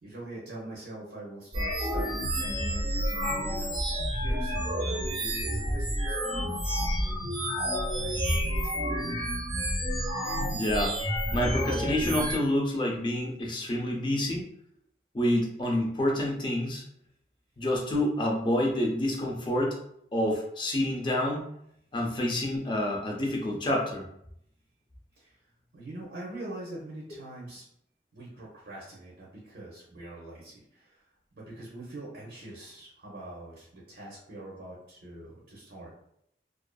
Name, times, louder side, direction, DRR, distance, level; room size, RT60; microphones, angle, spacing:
voice 1, 0.0-7.3 7.9-8.9 25.2-25.4 25.7-27.7 28.1-31.1 31.3-35.9, right 1 dB, 70° right, -5 dB, 0.6 m, -44 dB
sound 1, 1.5-12.4, equal, 25° right, 0.6 m, -29 dB
voice 2, 10.5-10.9 11.3-14.4 15.1-16.8 17.6-19.8 20.1-21.5 21.9-24.1, left 1 dB, 25° left, -1 dB, 0.4 m, -28 dB
2.4 x 2.4 x 2.2 m, 0.73 s
head